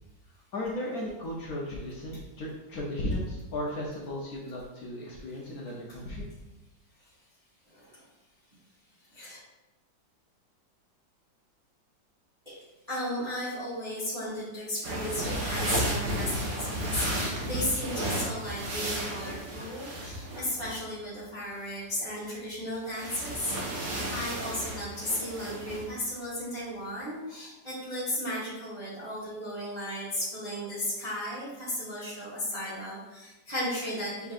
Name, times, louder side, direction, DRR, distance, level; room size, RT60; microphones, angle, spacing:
voice 1, 0.5-6.3, left 1 dB, 65° left, -4 dB, 1.0 m, -35 dB
voice 2, 7.7-8.0 9.1-9.4 12.4-34.3, left 1 dB, 25° right, -9 dB, 1.0 m, -35 dB
sound 1, 14.8-20.8 22.9-25.9, right 1 dB, 55° right, 1.3 m, -33 dB
5.4 x 3.5 x 2.4 m, 1.0 s
omnidirectional pair, 2.1 m